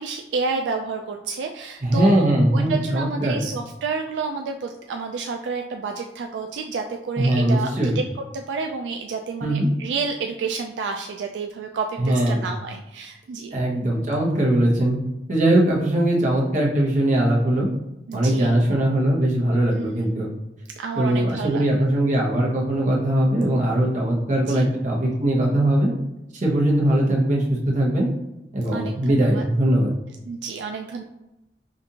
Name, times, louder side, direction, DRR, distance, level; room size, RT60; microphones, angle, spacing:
voice 1, 0.0-8.0 8.3-13.5 18.1-18.6 19.7-20.1 20.8-21.8 24.5-24.6 28.7-29.4 30.3-31.0, right 4 dB, 75° right, 3 dB, 0.3 m, -30 dB
voice 2, 1.8-3.4 7.2-8.0 9.4-9.7 12.0-12.5 13.5-15.0 15.3-17.7 18.1-20.3 21.0-25.9 26.3-28.1 28.5-29.9, right 1 dB, 45° right, -3 dB, 1.0 m, -20 dB
5.0 x 2.5 x 2.8 m, 0.96 s
head